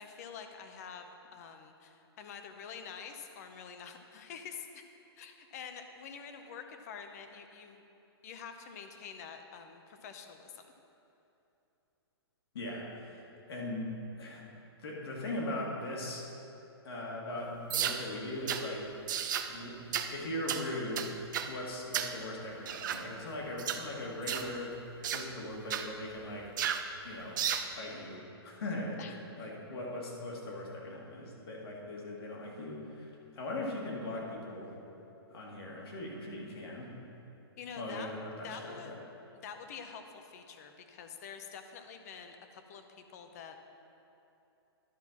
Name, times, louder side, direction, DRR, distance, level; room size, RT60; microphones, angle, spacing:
voice 1, 0.0-4.8 5.2-7.8 8.2-10.7 29.0-29.5 37.6-38.1 38.4-39.0 39.4-43.6, left 6 dB, 40° left, 6 dB, 0.7 m, -47 dB
voice 2, 12.5-14.4 14.8-16.3 16.8-18.9 19.5-21.1 21.5-24.8 25.1-26.5 27.0-27.4 27.7-29.0 29.4-34.7 35.3-36.9 37.8-38.9, left 1 dB, 65° left, -3 dB, 2.0 m, -40 dB
sound 1, 17.7-18.0 18.5-18.6 19.1-19.5 19.9-20.1 20.5-20.6 21.0-21.5 21.9-22.2 22.7-23.0 23.6-23.8 24.3-24.5 25.0-25.3 25.7-25.9 26.6-26.9 27.4-27.7, right 9 dB, 45° right, 0.5 m, -33 dB
11.0 x 4.5 x 5.8 m, 2.9 s
hypercardioid pair, 160°, 14 cm